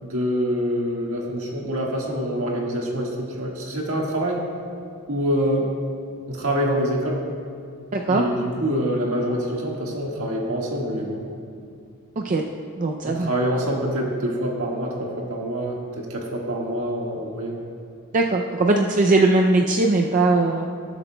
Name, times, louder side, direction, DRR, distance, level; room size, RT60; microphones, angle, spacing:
voice 1, 0.0-4.4 5.1-5.7 6.3-7.2 8.1-11.2 13.0-17.6, equal, 65° right, -2 dB, 1.7 m, -25 dB
voice 2, 7.9-8.2 12.2-12.4 12.8-13.3 18.1-20.7, right 2 dB, 35° right, 1 dB, 0.4 m, -20 dB
18.5 x 8.0 x 2.2 m, 2.3 s
head